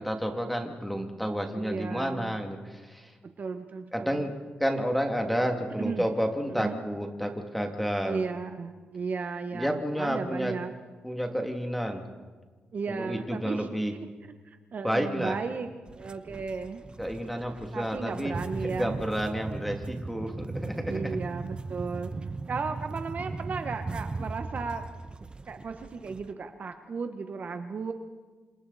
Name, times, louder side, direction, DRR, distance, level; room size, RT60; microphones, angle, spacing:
voice 1, 0.0-3.1 3.9-4.3 4.6-8.2 9.5-10.5 11.0-12.0 12.9-13.9 14.8-15.4 17.0-18.4 18.6-21.1, equal, ahead, 3 dB, 2.6 m, -30 dB
voice 2, 1.6-2.4 3.4-4.3 5.8-6.1 6.5-6.8 8.0-10.7 12.7-13.7 14.4-16.8 17.7-19.0 20.2-20.6 20.9-22.1 22.5-24.8 25.5-27.9, right 5 dB, 50° right, 7 dB, 1.2 m, -35 dB
sound 1, 15.9-26.3, right 3 dB, 25° right, 0.8 m, -38 dB
28.5 x 26.0 x 4.2 m, 1.4 s
cardioid pair, 115°, 4 cm